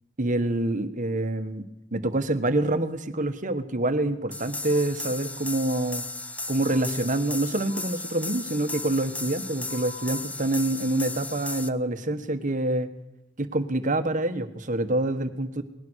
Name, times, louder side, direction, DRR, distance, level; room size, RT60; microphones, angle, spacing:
voice 1, 0.2-1.6 1.9-6.1 6.5-12.9 13.4-15.6, right 1 dB, 40° right, 10 dB, 1.5 m, -26 dB
sound 1, 4.3-11.7, left 2 dB, 5° left, 0.7 m, -35 dB
sound 2, 4.7-4.8 5.7-5.8 6.7-6.8 7.7-7.8 8.7-8.8 9.7-10.2, left 4 dB, 45° left, 6.1 m, -45 dB
21.0 x 20.0 x 6.5 m, 0.85 s
head